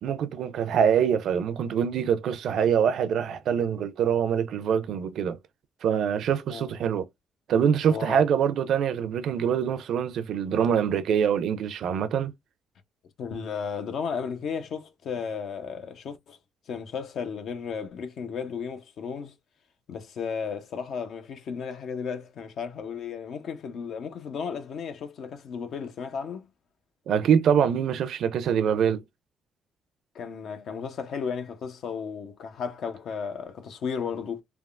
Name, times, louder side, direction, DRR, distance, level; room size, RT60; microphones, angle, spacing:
voice 1, 0.0-5.4 5.8-7.1 7.5-12.3 27.1-29.0, right 8 dB, 75° right, 0.4 m, -24 dB
voice 2, 7.9-8.3 13.2-16.4 16.7-19.3 19.9-26.5 30.1-34.4, left 6 dB, 70° left, 0.6 m, -34 dB
3.4 x 2.3 x 2.4 m
cardioid pair, 90°, 0 cm